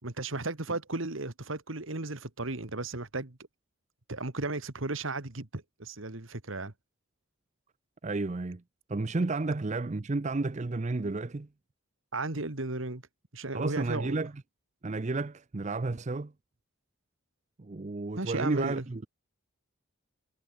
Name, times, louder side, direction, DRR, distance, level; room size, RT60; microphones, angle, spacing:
voice 1, 0.0-3.4 4.1-6.7 12.1-13.0 13.3-14.2 18.2-18.9, right 2 dB, 65° right, 1.9 m, -35 dB
voice 2, 8.0-8.6 8.9-11.5 13.5-14.3 14.8-16.3 17.6-19.1, right 3 dB, 35° right, 0.5 m, -32 dB
head